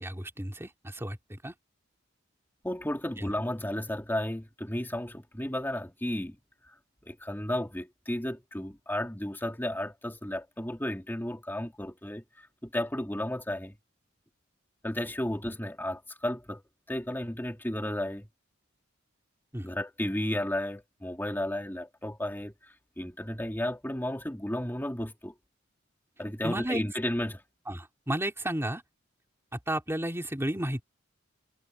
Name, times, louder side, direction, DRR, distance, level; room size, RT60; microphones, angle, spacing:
voice 1, 0.0-1.5 19.5-19.7 26.4-26.8 27.7-28.8 29.7-30.8, right 1 dB, 15° right, 2.6 m, -32 dB
voice 2, 2.6-6.4 6.7-6.8 7.0-13.7 14.8-16.6 16.9-18.3 19.6-25.3 26.2-27.4, left 1 dB, 10° left, 2.2 m, -33 dB
head